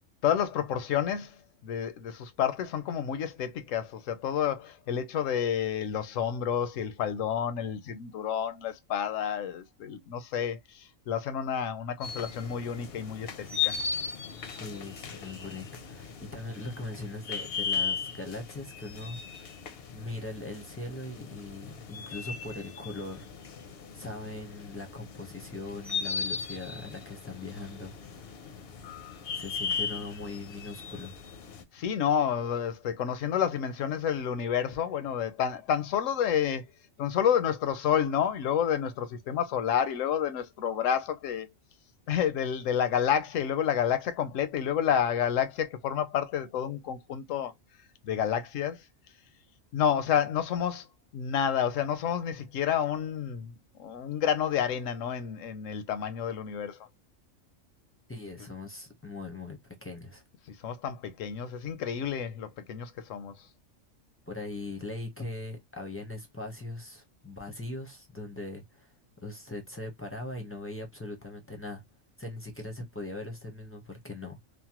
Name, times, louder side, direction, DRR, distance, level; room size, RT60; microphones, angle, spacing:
voice 1, 0.2-13.7 31.7-36.7 37.0-41.5 42.1-47.5 48.0-48.8 49.7-50.9 51.1-56.8 60.5-63.4, left 8 dB, 75° left, 1.0 m, -29 dB
sound 1, 12.0-31.6, left 6 dB, 60° left, 0.7 m, -37 dB
voice 2, 14.6-19.6 19.9-23.3 23.9-28.4 29.3-31.1 58.1-60.2 64.3-68.9 69.2-71.8 72.2-74.4, left 2 dB, 15° left, 0.5 m, -40 dB
3.2 x 2.1 x 2.8 m
omnidirectional pair, 1.4 m